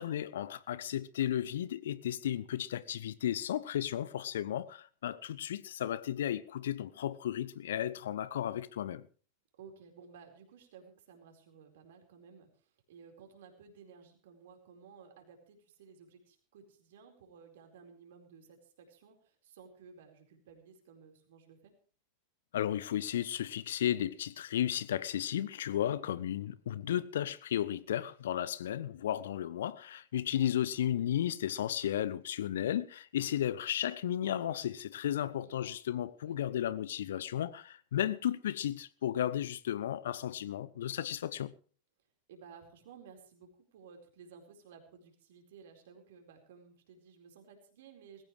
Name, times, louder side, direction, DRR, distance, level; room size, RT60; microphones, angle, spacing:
voice 1, 0.0-9.1 22.5-41.5, left 11 dB, 60° left, 0.7 m, -34 dB
voice 2, 9.5-21.8 35.1-35.7 36.2-36.5 42.3-48.2, right 6 dB, 55° right, 4.5 m, -56 dB
20.0 x 17.0 x 3.3 m
figure-of-eight pair, 90°, 0 cm